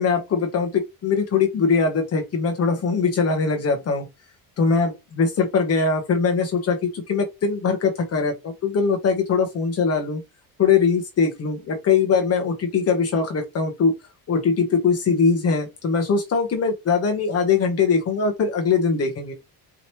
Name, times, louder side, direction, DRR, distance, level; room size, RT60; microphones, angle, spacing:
voice 1, 0.0-4.1 4.6-10.2 10.6-13.9 14.3-19.3, left 5 dB, 40° left, 1.2 m, -21 dB
5.0 x 3.1 x 3.0 m
cardioid pair, 165°, 37 cm